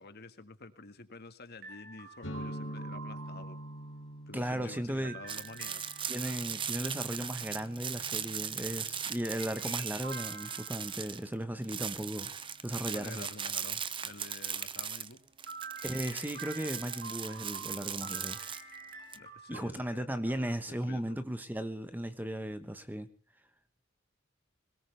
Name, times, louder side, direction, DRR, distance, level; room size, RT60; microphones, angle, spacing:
voice 1, 0.0-3.6 4.3-5.8 12.9-15.2 19.1-21.2, left 3 dB, 55° left, 9 dB, 1.7 m, -49 dB
sound 1, 1.6-4.1 5.0-6.6 9.4-11.1 15.5-19.6, right 5 dB, 55° right, 7.2 m, -47 dB
sound 2, 2.2-9.8, equal, 70° left, 2.5 m, -46 dB
voice 2, 4.3-5.2 6.1-12.3 12.6-13.3 15.8-18.4 19.5-23.1, right 1 dB, 10° right, 10 dB, 1.2 m, -36 dB
sound 3, 5.3-11.3 11.6-19.2, right 8 dB, 25° right, 0.7 m, -38 dB
21.5 x 18.5 x 3.4 m, 0.42 s
head